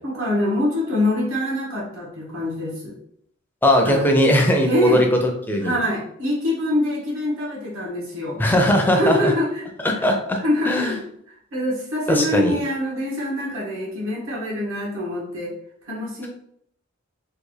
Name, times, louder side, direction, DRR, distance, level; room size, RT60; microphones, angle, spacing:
voice 1, 0.0-2.9 3.8-4.1 4.6-5.0 5.6-8.4 8.9-10.1 10.4-11.0 11.3-15.6 15.9-16.3, left 1 dB, 75° right, -4 dB, 1.3 m, -24 dB
voice 2, 3.6-5.7 8.4-9.3 9.8-10.9 12.1-12.6, equal, 10° left, 2 dB, 0.4 m, -19 dB
3.5 x 2.3 x 3.1 m, 0.69 s
head